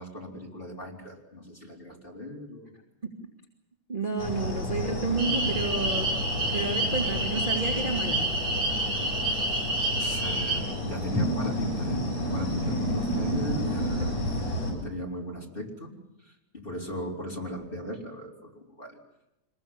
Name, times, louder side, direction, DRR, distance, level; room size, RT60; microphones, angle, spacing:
voice 1, 0.0-2.8 9.9-14.1 14.6-15.9 16.2-19.0, left 1 dB, 15° left, -2 dB, 4.2 m, -37 dB
voice 2, 3.9-6.1 6.5-8.2, right 3 dB, 15° right, -1 dB, 2.5 m, -30 dB
sound 1, 4.2-14.7, equal, 60° left, 8.9 m, -31 dB
sound 2, 5.2-10.6, right 1 dB, 35° right, 3.3 m, -29 dB
26.0 x 21.5 x 7.4 m, 0.92 s
omnidirectional pair, 3.5 m